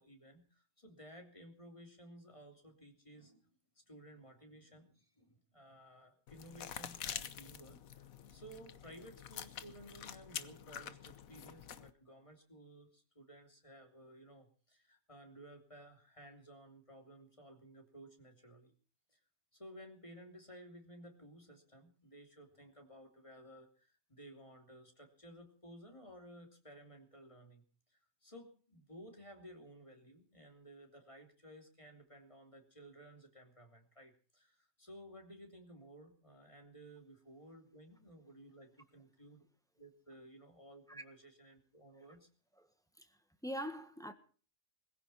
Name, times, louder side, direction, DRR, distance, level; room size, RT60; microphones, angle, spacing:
voice 1, 0.0-3.6 3.9-18.7 19.1-19.2 19.5-27.6 27.9-39.4 39.8-42.3, right 1 dB, 25° left, 3.2 m, -56 dB
sound 1, 6.3-11.9, left 9 dB, 85° left, 1.4 m, -47 dB
voice 2, 43.0-44.1, equal, 5° left, 1.5 m, -43 dB
21.5 x 15.5 x 4.3 m
omnidirectional pair, 1.4 m